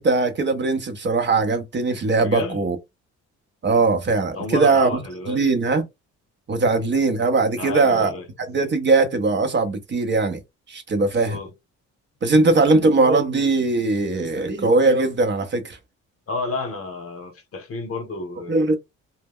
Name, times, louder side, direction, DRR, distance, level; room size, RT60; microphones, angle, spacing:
voice 1, 0.0-2.8 3.6-5.0 5.3-5.8 6.5-8.1 8.5-10.4 10.7-11.4 12.2-15.8 18.5-18.8, right 3 dB, 40° right, 0.6 m, -20 dB
voice 2, 2.2-2.6 4.3-5.4 6.6-6.7 7.6-8.3 11.0-11.5 16.3-18.8, left 3 dB, 50° left, 0.9 m, -31 dB
2.1 x 2.1 x 3.5 m
cardioid pair, 90°, 30 cm